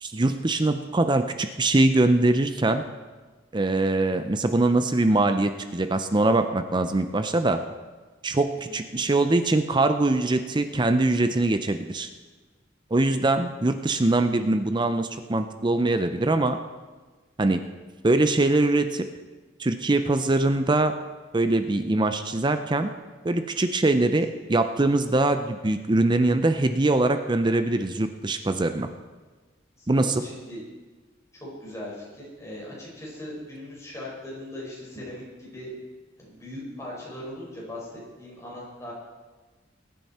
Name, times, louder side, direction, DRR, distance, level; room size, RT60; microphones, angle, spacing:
voice 1, 0.0-2.8 3.5-7.6 8.2-12.1 12.9-16.6 17.4-17.6 18.0-19.1 19.6-20.9 21.3-22.9 23.2-28.9 29.9-30.2, right 2 dB, 25° right, 8 dB, 0.6 m, -23 dB
voice 2, 8.4-9.0 29.8-30.6 31.3-35.7 36.2-38.9, left 1 dB, 15° left, -5 dB, 5.0 m, -39 dB
21.0 x 9.4 x 4.3 m, 1.3 s
head